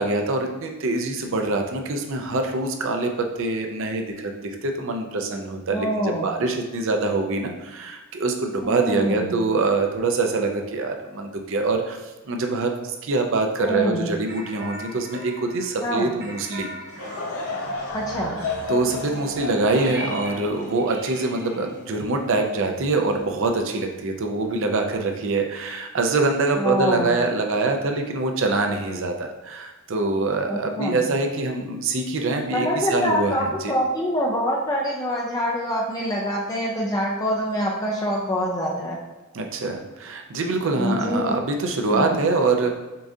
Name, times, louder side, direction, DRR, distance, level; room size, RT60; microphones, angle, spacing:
voice 1, 0.0-16.7 18.7-33.7 39.3-42.8, right 3 dB, 65° right, 4 dB, 0.5 m, -24 dB
voice 2, 5.7-6.3 8.6-9.3 13.6-14.1 15.8-16.1 17.9-18.4 26.6-27.2 30.5-31.1 32.5-39.0 40.7-41.4 41.9-42.2, equal, 15° left, -3 dB, 0.4 m, -25 dB
sound 1, 14.3-23.2, right 2 dB, 45° right, 1.0 m, -39 dB
Laughter / Crowd, 16.9-22.4 22.9-23.0 23.8-24.1, left 3 dB, 85° left, 0.8 m, -33 dB
6.7 x 2.5 x 2.7 m, 1.1 s
head